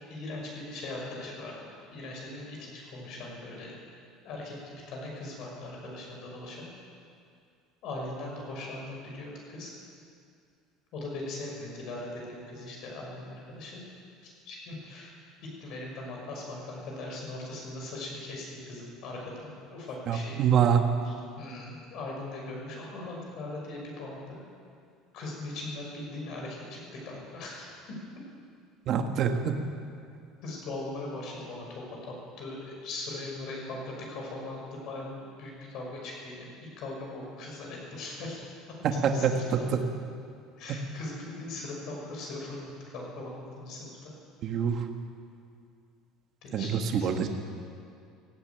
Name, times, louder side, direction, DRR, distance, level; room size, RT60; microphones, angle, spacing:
voice 1, 0.1-3.8 4.2-6.7 7.8-9.7 10.9-13.8 14.2-20.4 21.0-24.4 25.1-27.7 30.4-38.4 38.7-39.6 40.6-44.1 46.4-47.1, left 2 dB, 50° left, -1 dB, 5.7 m, -40 dB
voice 2, 20.1-20.8 28.9-29.5 39.0-39.8 44.4-44.9 46.5-46.7 46.9-47.3, right 7 dB, 40° right, 5 dB, 1.7 m, -25 dB
17.0 x 16.5 x 9.3 m, 2.4 s
cardioid pair, 170°, 0 cm